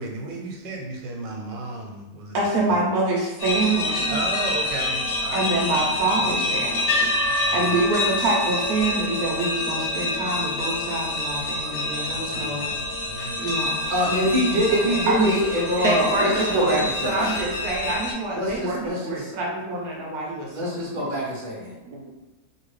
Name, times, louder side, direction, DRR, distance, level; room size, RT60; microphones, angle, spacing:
voice 1, 0.0-2.4 2.7-2.9 4.1-5.5 5.7-5.9 6.2-6.5 7.2-7.8 12.0-13.6, right 3 dB, 90° right, 1 dB, 1.4 m, -35 dB
voice 2, 2.3-4.2 5.3-12.7 13.4-13.8 14.1-15.4 15.8-21.0 21.9-22.1, right 2 dB, 65° right, -2 dB, 1.1 m, -26 dB
sound 1, 3.4-18.1, left 2 dB, 50° left, 1.0 m, -27 dB
sound 2, 13.2-13.3 13.8-14.3 14.6-15.3 16.3-16.7 17.1-18.9, left 2 dB, 80° left, 0.4 m, -39 dB
voice 3, 13.9-17.3 18.3-19.3 20.5-21.8, equal, 35° right, -5 dB, 0.9 m, -24 dB
3.0 x 2.8 x 3.1 m, 1.1 s
omnidirectional pair, 1.9 m